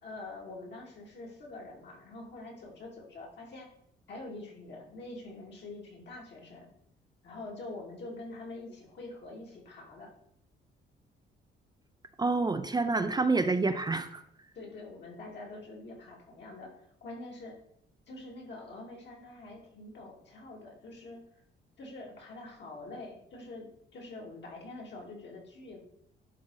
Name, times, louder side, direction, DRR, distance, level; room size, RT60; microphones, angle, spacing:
voice 1, 0.0-3.7 4.1-6.7 7.2-10.1 14.5-16.7 17.0-17.6 18.1-21.2 21.8-25.8, left 2 dB, 60° left, -2 dB, 2.6 m, -45 dB
voice 2, 12.2-14.2, right 3 dB, 20° right, 8 dB, 0.5 m, -28 dB
11.0 x 3.8 x 4.0 m, 0.71 s
cardioid pair, 90°, 20 cm